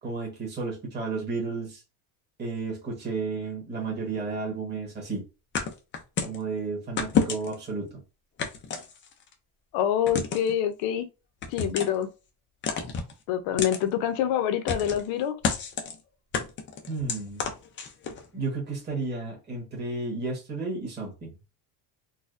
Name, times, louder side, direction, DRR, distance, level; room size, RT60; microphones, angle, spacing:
voice 1, 0.0-1.8 2.4-5.2 6.2-8.0 16.9-17.4 18.3-21.3, right 4 dB, 20° right, 1.4 m, -32 dB
sound 1, 5.5-6.4 7.0-7.7 8.4-9.3 10.1-10.5 11.4-12.0 12.6-13.1 13.6-13.8 14.7-15.1 15.4-15.9 16.3-18.2, left 6 dB, 25° left, 0.4 m, -29 dB
voice 2, 9.7-11.1 11.5-12.1 13.3-15.4, left 10 dB, 70° left, 0.8 m, -26 dB
4.1 x 2.2 x 2.5 m
cardioid pair, 160°, 48 cm